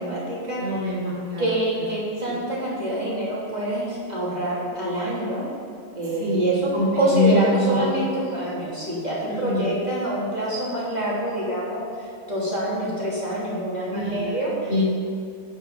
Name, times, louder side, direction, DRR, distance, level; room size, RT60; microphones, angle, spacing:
voice 1, 0.0-0.9 1.4-5.4 5.9-14.7, right 1 dB, 20° right, -8 dB, 2.9 m, -26 dB
voice 2, 0.6-1.4 2.3-2.4 6.2-6.4 6.7-6.9 7.1-7.9 9.3-9.7 13.9-14.3 14.7-14.8, left 2 dB, 85° right, -7 dB, 3.3 m, -24 dB
9.0 x 8.0 x 5.6 m, 2.5 s
omnidirectional pair, 2.2 m